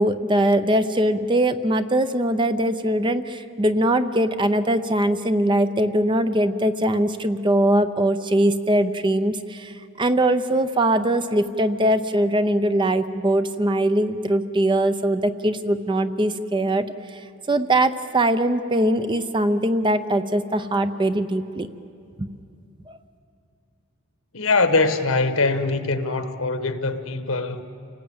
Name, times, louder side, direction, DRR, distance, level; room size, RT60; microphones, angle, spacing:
voice 1, 0.0-16.8 17.1-17.2 17.5-21.7 22.2-22.3 22.9-23.0, right 1 dB, 20° right, 0.7 m, -21 dB
voice 2, 24.3-27.6, left 3 dB, 70° left, 1.4 m, -22 dB
28.5 x 19.0 x 8.7 m
head